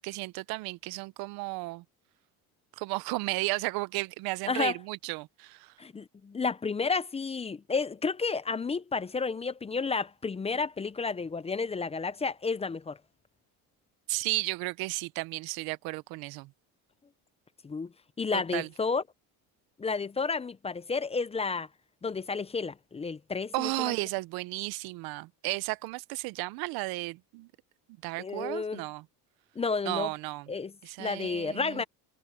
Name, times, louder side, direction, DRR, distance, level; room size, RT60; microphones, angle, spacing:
voice 1, 0.0-1.8 2.8-5.7 14.1-16.5 18.3-18.7 23.5-27.5 28.0-29.0 29.9-30.5 30.8-31.8, right 23 dB, 80° right, 0.7 m, -34 dB
voice 2, 5.8-13.0 17.6-17.9 18.2-19.0 19.8-21.7 22.0-23.9 28.2-28.8 29.6-30.1 30.5-30.7 31.0-31.8, left 4 dB, 15° left, 0.6 m, -31 dB
cardioid pair, 120°, 36 cm